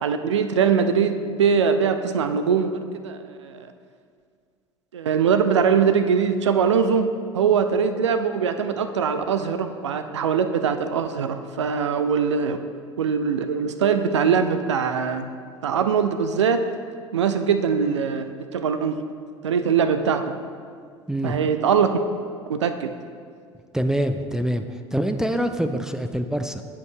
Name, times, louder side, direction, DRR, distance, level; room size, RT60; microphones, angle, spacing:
voice 1, 0.0-3.7 4.9-7.1 7.3-12.6 13.0-15.3 15.6-16.6 17.1-19.0 19.4-20.4 21.2-22.0 22.5-22.9, right 6 dB, 75° right, 9 dB, 0.4 m, -22 dB
voice 2, 23.7-24.6 24.9-26.6, right 1 dB, 5° right, 8 dB, 0.3 m, -25 dB
15.5 x 5.3 x 2.2 m, 2.1 s
figure-of-eight pair, 70°, 15 cm